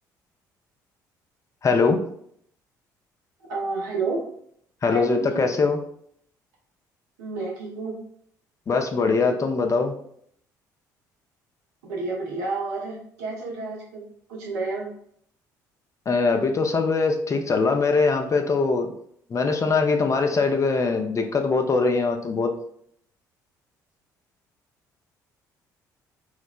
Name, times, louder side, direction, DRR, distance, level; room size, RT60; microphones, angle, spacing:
voice 1, 1.6-2.0 4.8-5.8 8.7-9.9 16.1-18.9 19.3-22.5, left 4 dB, 30° left, 5 dB, 0.5 m, -22 dB
voice 2, 3.5-4.2 4.9-5.4 7.2-8.0 11.8-14.9, right 3 dB, 75° right, -2 dB, 0.6 m, -30 dB
3.1 x 2.1 x 2.3 m, 0.66 s
figure-of-eight pair, 50°, 10 cm